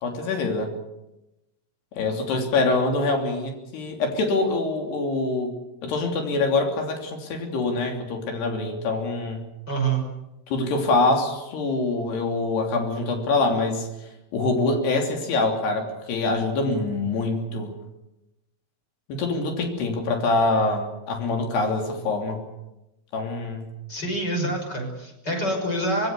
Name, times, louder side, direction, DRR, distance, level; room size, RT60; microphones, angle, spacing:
voice 1, 0.0-0.7 2.0-5.5 5.8-9.4 10.5-13.9 14.3-17.7 19.1-22.4 23.1-23.7, left 3 dB, 85° left, 3 dB, 5.3 m, -25 dB
voice 2, 9.7-10.0 23.9-26.1, right 2 dB, 25° left, 1 dB, 6.5 m, -26 dB
25.0 x 20.5 x 6.9 m, 0.94 s
omnidirectional pair, 4.6 m